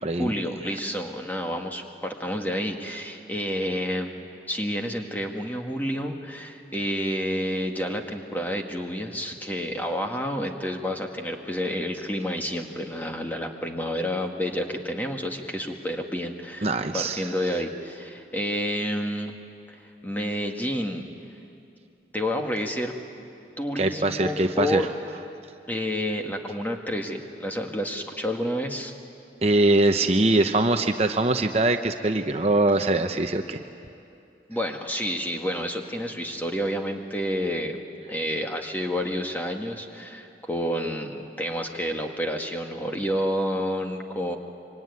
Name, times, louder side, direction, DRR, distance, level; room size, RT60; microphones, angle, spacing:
voice 1, 0.1-4.1 4.5-19.4 19.7-21.1 22.1-23.0 23.6-24.9 25.7-28.9 34.5-37.8 38.1-44.4, equal, 10° left, 2 dB, 1.7 m, -29 dB
voice 2, 16.6-17.3 23.8-24.8 29.4-33.6, right 2 dB, 35° right, 6 dB, 0.8 m, -22 dB
25.5 x 24.5 x 9.6 m, 2.6 s
head